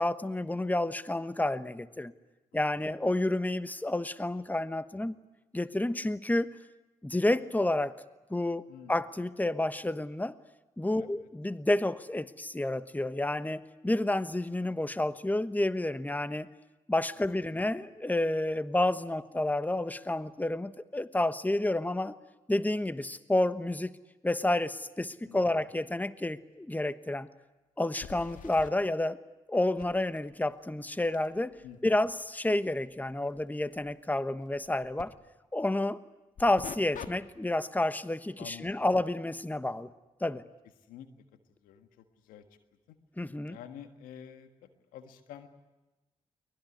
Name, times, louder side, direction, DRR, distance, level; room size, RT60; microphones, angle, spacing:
voice 1, 0.0-2.1 2.5-5.2 5.5-6.6 7.0-7.9 8.3-8.6 8.9-10.3 10.8-16.5 16.9-22.1 22.5-23.9 24.2-27.3 27.8-29.2 29.5-31.6 31.8-35.1 35.5-36.0 36.4-39.9 40.2-40.4 43.2-43.6, left 1 dB, 10° left, 13 dB, 1.2 m, -30 dB
voice 2, 11.0-11.3 25.2-25.6 31.6-32.0 38.4-38.7 40.8-41.1 41.6-42.4 42.9-43.0 43.5-45.5, left 9 dB, 85° left, 8 dB, 1.6 m, -49 dB
sound 1, 26.2-26.3 26.6-26.7 28.0-28.7 29.8-35.1 36.4-37.1 37.5-37.8 42.4-42.5 43.5-43.6, left 7 dB, 65° left, 1.6 m, -49 dB
23.5 x 20.5 x 9.7 m, 1.1 s
hypercardioid pair, 40°, 14 cm